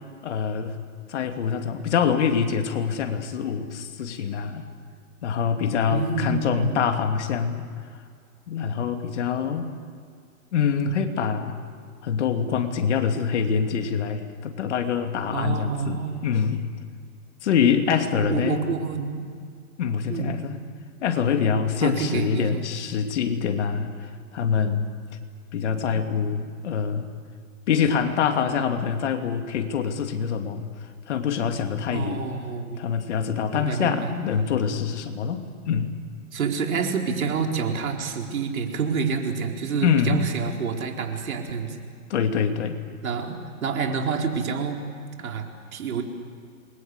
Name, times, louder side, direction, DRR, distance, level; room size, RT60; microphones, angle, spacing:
voice 1, 0.2-0.8 1.1-4.7 5.2-7.6 8.5-9.7 10.5-11.6 12.0-16.6 17.4-18.6 19.8-20.6 21.0-24.1 24.3-24.9 25.5-27.1 27.7-30.6 31.1-32.2 32.8-35.9 39.8-40.2 42.1-42.8, left 7 dB, 50° left, 5 dB, 2.6 m, -25 dB
voice 2, 5.9-6.8 15.3-16.3 18.2-19.3 20.1-20.4 21.8-22.7 25.7-26.0 31.9-32.8 33.5-34.1 36.3-41.8 43.0-44.8 45.2-46.0, right 5 dB, 70° right, 2 dB, 4.3 m, -28 dB
28.0 x 22.5 x 8.2 m, 2.1 s
hypercardioid pair, 155°, 44 cm